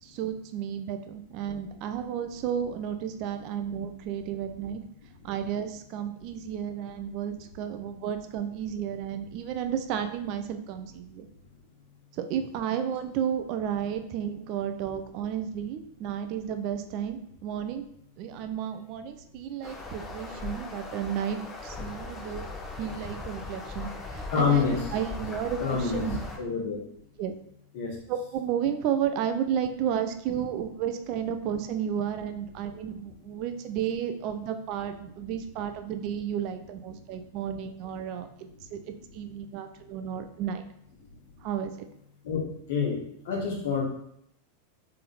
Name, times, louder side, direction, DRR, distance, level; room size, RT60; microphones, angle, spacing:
voice 1, 0.0-4.8 5.2-11.3 12.1-17.8 18.2-22.5 22.8-26.2 27.2-27.3 28.1-40.7 41.4-41.7, right 9 dB, 40° right, 8 dB, 0.4 m, -32 dB
sound 1, 19.6-26.4, left 3 dB, 15° left, 1.1 m, -39 dB
voice 2, 24.3-24.8 25.6-26.0 26.4-26.8 27.7-28.0 42.2-42.4 42.7-43.8, left 6 dB, 55° left, -1 dB, 1.3 m, -27 dB
3.7 x 3.2 x 4.0 m, 0.71 s
figure-of-eight pair, 90°, 0 cm